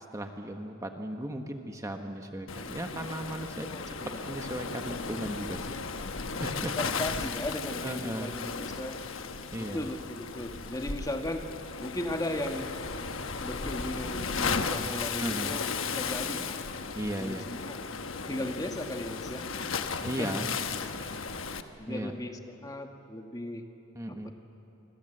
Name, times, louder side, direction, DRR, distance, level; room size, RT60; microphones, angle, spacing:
voice 1, 0.1-4.0 4.2-5.8 6.4-6.8 7.8-8.3 9.5-9.8 15.2-15.6 16.9-17.4 20.0-20.5 21.9-22.1 23.9-24.3, right 1 dB, 15° right, 4 dB, 1.1 m, -36 dB
Waves surf, 2.5-21.6, left 5 dB, 65° left, 1.2 m, -35 dB
voice 2, 3.6-4.2 6.8-9.0 9.6-11.5 11.8-16.7 17.2-17.8 18.3-19.5 20.2-20.4 21.8-23.7 24.1-24.3, left 1 dB, 20° left, 5 dB, 1.6 m, -37 dB
26.5 x 25.0 x 7.8 m, 2.9 s
head